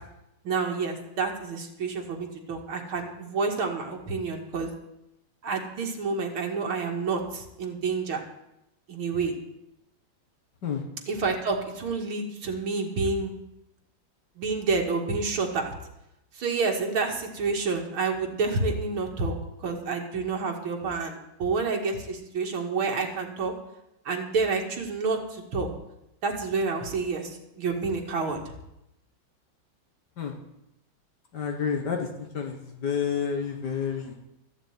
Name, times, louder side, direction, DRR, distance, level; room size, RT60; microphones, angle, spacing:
voice 1, 0.4-4.7 5.4-8.2 8.9-9.3 11.1-13.3 14.4-15.7 16.4-19.3 19.6-23.5 24.1-25.7 26.2-27.3 27.6-28.4, right 4 dB, 90° right, 2 dB, 2.7 m, -29 dB
voice 2, 31.3-34.2, left 6 dB, 55° left, 4 dB, 2.1 m, -30 dB
14.0 x 6.6 x 9.3 m, 0.86 s
omnidirectional pair, 2.2 m